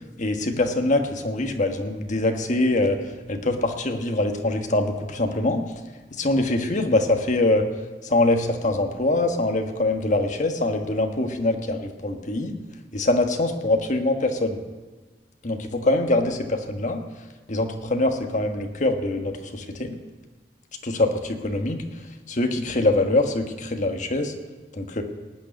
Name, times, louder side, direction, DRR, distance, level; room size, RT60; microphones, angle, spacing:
voice 1, 0.2-3.0 3.3-5.6 6.2-7.6 8.0-12.5 12.9-14.6 15.4-17.0 17.5-19.9 20.8-21.8 22.3-24.3 24.7-25.0, left 2 dB, 45° left, 4 dB, 1.4 m, -23 dB
18.5 x 6.6 x 9.5 m, 1.3 s
head